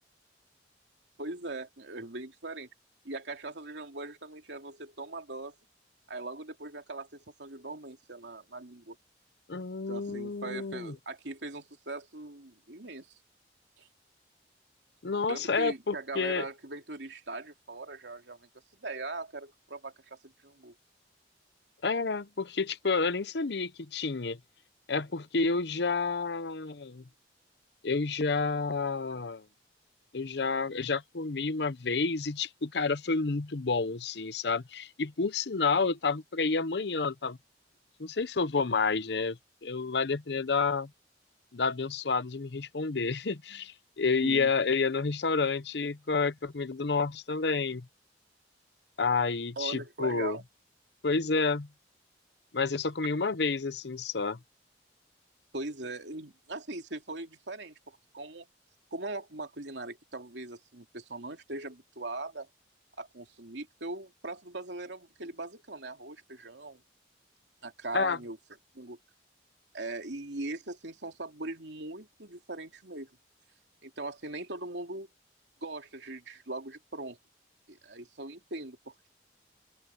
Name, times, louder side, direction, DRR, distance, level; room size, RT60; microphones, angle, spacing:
voice 1, 1.2-2.7 3.0-5.6 6.1-9.0 9.9-13.1 13.8-13.9 15.3-18.5 18.8-20.7 44.2-44.5 49.6-50.4 55.5-58.4 58.9-62.5 63.0-66.8 67.6-68.4 68.7-69.0 69.7-73.1 73.8-75.1 75.6-77.2 77.7-79.1, right 2 dB, 80° right, 2.8 m, -40 dB
voice 2, 9.5-10.9 15.0-16.4 21.8-24.4 24.9-27.0 27.8-29.4 30.1-37.4 38.0-40.9 41.5-47.9 49.0-50.4 51.0-51.7 52.5-54.4 67.9-68.2, left 4 dB, 70° left, 0.8 m, -30 dB
open air
head